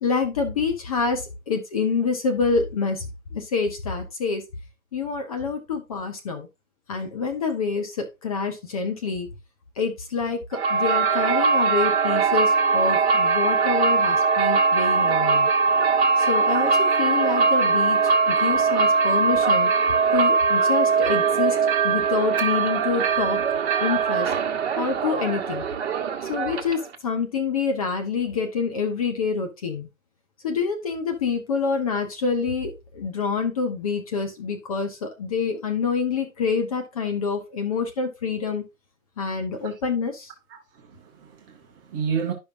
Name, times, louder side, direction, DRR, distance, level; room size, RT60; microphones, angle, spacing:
voice 1, 0.0-3.0 3.3-4.4 4.9-6.5 6.9-9.3 9.8-15.5 16.2-19.7 20.1-21.6 21.8-23.4 23.8-24.3 24.8-25.6 26.3-29.9 30.4-38.6 39.2-40.3, left 5 dB, 25° left, 0.7 m, -27 dB
sound 1, 10.5-27.0, right 5 dB, 45° right, 1.2 m, -21 dB
voice 2, 40.5-42.3, right 6 dB, 15° right, 0.8 m, -31 dB
11.5 x 5.4 x 2.5 m
hypercardioid pair, 145°, 43 cm